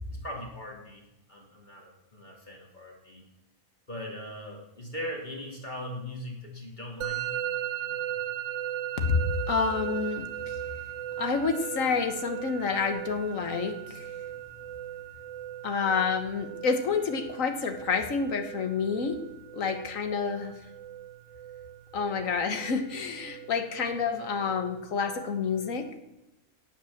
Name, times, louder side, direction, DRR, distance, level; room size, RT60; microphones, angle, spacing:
voice 1, 0.1-1.0 1.3-3.2 3.9-7.3 7.8-8.1, equal, 30° left, -2 dB, 3.0 m, -40 dB
Musical instrument, 7.0-25.9, right 12 dB, 65° right, 0.9 m, -38 dB
voice 2, 9.5-10.6 11.2-14.1 15.6-19.2 19.5-20.5 21.9-25.8, left 5 dB, 65° left, 6 dB, 1.6 m, -29 dB
17.0 x 5.9 x 7.2 m, 0.95 s
omnidirectional pair, 1.5 m